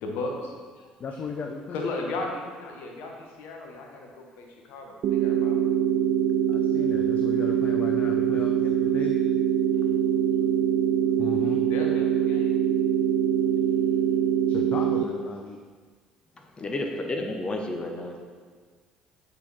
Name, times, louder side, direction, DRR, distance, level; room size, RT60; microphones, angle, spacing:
voice 1, 0.0-0.9 1.7-5.7 9.7-10.0 11.7-12.5 16.9-17.0, left 2 dB, 65° left, 1 dB, 1.2 m, -36 dB
voice 2, 1.0-1.9 6.5-9.1 11.2-11.6 14.5-15.6, left 5 dB, 45° left, 3 dB, 0.6 m, -36 dB
sound 1, 5.0-15.0, right 9 dB, 55° right, 0.5 m, -23 dB
voice 3, 16.6-18.2, left 2 dB, 25° left, 2 dB, 1.1 m, -31 dB
6.7 x 4.8 x 5.4 m, 1.5 s
figure-of-eight pair, 55°, 3 cm